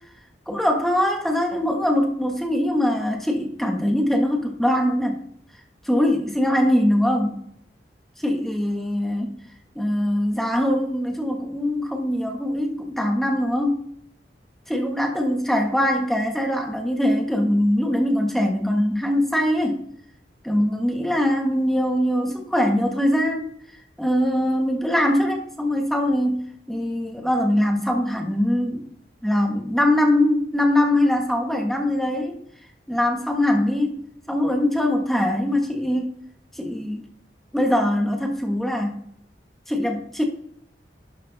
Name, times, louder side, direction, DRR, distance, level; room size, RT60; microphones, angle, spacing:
voice 1, 0.5-5.2 5.8-7.4 8.2-9.4 9.7-13.8 14.7-19.8 20.4-23.5 24.0-28.8 29.2-32.4 32.9-34.0 34.3-36.1 36.5-37.1 37.5-39.0 39.7-40.2, left 1 dB, ahead, 2 dB, 1.5 m, -22 dB
12.0 x 6.4 x 4.1 m, 0.67 s
head